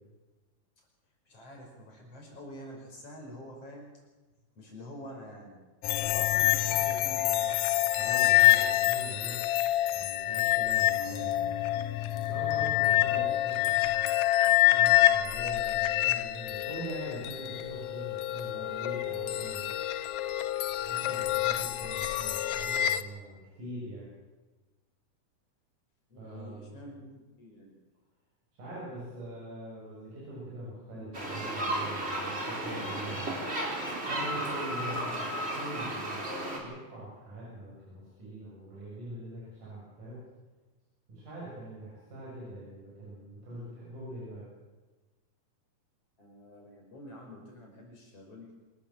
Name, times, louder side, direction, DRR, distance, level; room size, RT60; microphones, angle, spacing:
voice 1, 1.3-3.9 4.6-5.6 6.0-7.6 14.4-14.9 26.1-27.8 46.2-48.5, equal, 45° left, 0 dB, 6.4 m, -47 dB
sound 1, 5.8-23.0, left 14 dB, 70° left, 2.0 m, -27 dB
voice 2, 8.0-9.4 9.9-11.9 12.2-13.7 14.7-20.1 20.8-24.1 26.2-26.8 28.6-33.4 34.1-36.3 36.6-40.2 41.1-44.5, right 1 dB, 70° right, -6 dB, 8.2 m, -43 dB
sound 2, 31.1-36.6, right 1 dB, 20° right, 3.9 m, -34 dB
26.5 x 14.0 x 7.3 m, 1.2 s
omnidirectional pair, 3.7 m